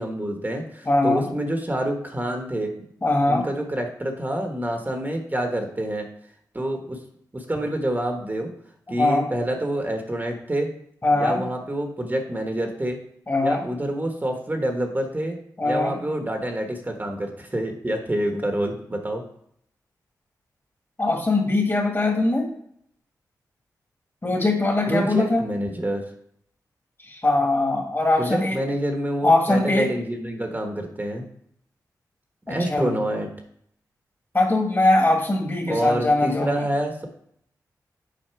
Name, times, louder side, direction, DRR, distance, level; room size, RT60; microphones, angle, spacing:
voice 1, 0.0-2.7 3.3-6.1 6.5-7.0 7.3-8.5 8.9-10.7 11.1-13.0 13.4-19.2 24.9-26.0 28.2-31.3 32.5-33.3 35.7-37.1, right 1 dB, 25° right, 3 dB, 1.3 m, -27 dB
voice 2, 0.9-1.3 3.0-3.4 9.0-9.3 11.0-11.4 13.3-13.6 15.6-16.0 21.0-22.5 24.2-25.5 27.0-28.6 29.2-29.9 32.5-33.0 34.3-36.7, left 2 dB, 35° left, 2 dB, 2.1 m, -21 dB
7.7 x 4.2 x 4.7 m, 0.68 s
cardioid pair, 50°, 7 cm